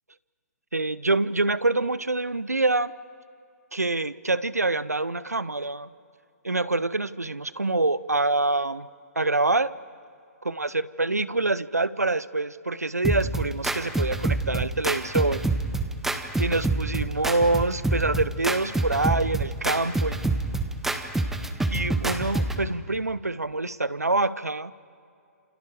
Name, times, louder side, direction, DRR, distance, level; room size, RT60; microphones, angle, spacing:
voice 1, 0.7-2.9 3.7-5.9 6.4-8.9 9.2-9.7 10.4-15.5 16.4-20.2 21.7-24.7, right 2 dB, 85° right, 17 dB, 0.8 m, -26 dB
sound 1, 13.0-22.6, right 2 dB, 5° right, 1.2 m, -27 dB
28.5 x 28.5 x 4.9 m, 2.5 s
figure-of-eight pair, 125°, 8 cm